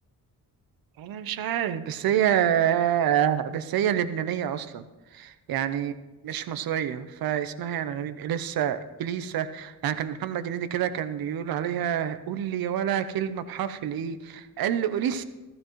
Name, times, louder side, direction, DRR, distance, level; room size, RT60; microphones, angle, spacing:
voice 1, 1.0-4.8 5.1-5.9 6.2-15.2, right 10 dB, 80° right, 12 dB, 0.7 m, -27 dB
14.5 x 14.5 x 3.1 m, 1.1 s
wide cardioid pair, 165°, 35 cm